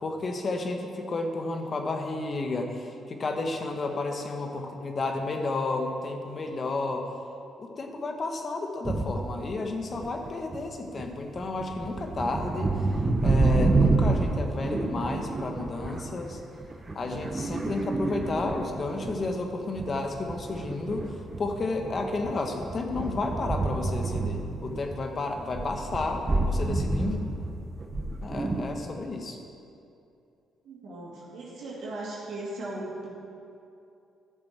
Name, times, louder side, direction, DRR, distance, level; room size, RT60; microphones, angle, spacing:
voice 1, 0.0-7.1 7.6-12.9 13.2-16.4 16.9-27.2 28.2-29.4, left 3 dB, 45° left, 4 dB, 1.2 m, -32 dB
sound 1, 8.8-9.3 9.9-10.6 11.0-19.4 19.8-25.0 25.3-28.6, right 3 dB, 30° right, 1.0 m, -29 dB
voice 2, 30.6-33.1, right 2 dB, 75° right, -7 dB, 2.5 m, -37 dB
12.0 x 6.9 x 4.4 m, 2.6 s
supercardioid pair, 70°, 0 cm